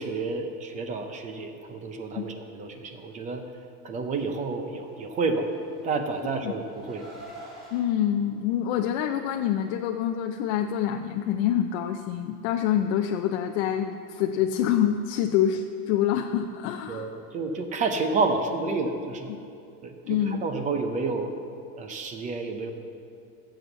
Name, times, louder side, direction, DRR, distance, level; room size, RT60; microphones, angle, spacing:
voice 1, 0.0-3.4 3.8-5.5 5.8-7.1 16.9-19.4 19.8-21.4 21.8-22.7, right 3 dB, 15° right, 6 dB, 0.5 m, -30 dB
Car, 5.3-7.8, right 2 dB, ahead, 2.7 m, -46 dB
voice 2, 7.7-17.1 20.1-20.4, left 10 dB, 50° left, 4 dB, 0.6 m, -26 dB
15.5 x 8.0 x 7.0 m, 2.5 s
supercardioid pair, 175°, 45 cm